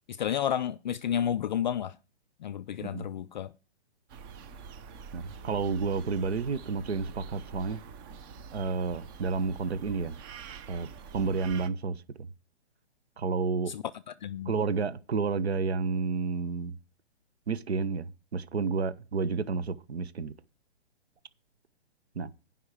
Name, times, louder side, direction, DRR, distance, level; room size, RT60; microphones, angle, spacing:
voice 1, 0.1-2.0 2.4-3.5 13.7-14.5, left 9 dB, 45° left, 0.5 m, -31 dB
sound 1, 4.1-11.7, right 5 dB, 20° right, 0.7 m, -46 dB
voice 2, 5.1-7.8 8.5-10.2 10.7-10.9 11.1-12.0 13.2-13.7 14.4-16.7 17.5-20.3 22.2-22.3, right 5 dB, 70° right, 1.2 m, -30 dB
16.0 x 5.7 x 4.8 m
hypercardioid pair, 145°, 33 cm